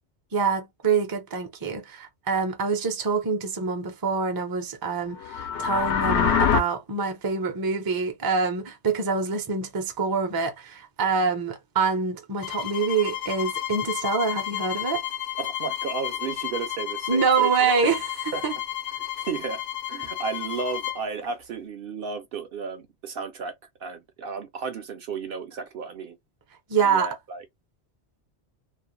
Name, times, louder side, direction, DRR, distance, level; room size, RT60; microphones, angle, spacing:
voice 1, 0.3-15.1 17.1-18.0 18.4-18.5 26.7-27.1, right 5 dB, 30° right, 0.4 m, -25 dB
sound 1, 5.2-6.6, left 7 dB, 85° left, 0.9 m, -23 dB
sound 2, 12.4-21.0, left 13 dB, 60° left, 0.6 m, -32 dB
voice 2, 15.4-17.9 18.3-18.4 19.2-23.5 23.8-26.2 26.8-27.4, right 5 dB, 65° right, 0.7 m, -33 dB
2.4 x 2.0 x 2.9 m
omnidirectional pair, 1.2 m